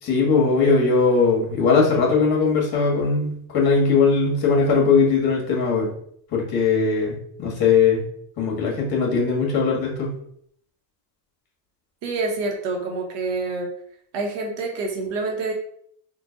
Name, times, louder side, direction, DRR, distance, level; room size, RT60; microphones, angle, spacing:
voice 1, 0.0-5.9 6.3-8.0 8.4-10.1, left 4 dB, 50° left, -2 dB, 1.6 m, -19 dB
voice 2, 12.0-13.7 14.1-15.5, right 3 dB, 65° right, 2 dB, 1.2 m, -27 dB
3.8 x 2.5 x 3.9 m, 0.65 s
cardioid pair, 125°, 46 cm